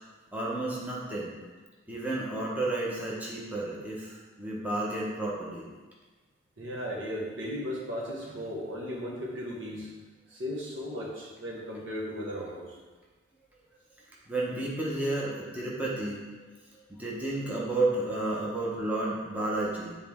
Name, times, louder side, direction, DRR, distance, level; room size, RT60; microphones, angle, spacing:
voice 1, 0.3-1.4 1.9-5.7 14.3-16.2 16.9-20.0, right 2 dB, 10° right, -5 dB, 1.1 m, -31 dB
voice 2, 6.6-9.9 10.3-12.7, equal, 70° right, -4 dB, 1.6 m, -36 dB
8.4 x 4.2 x 3.6 m, 1.3 s
head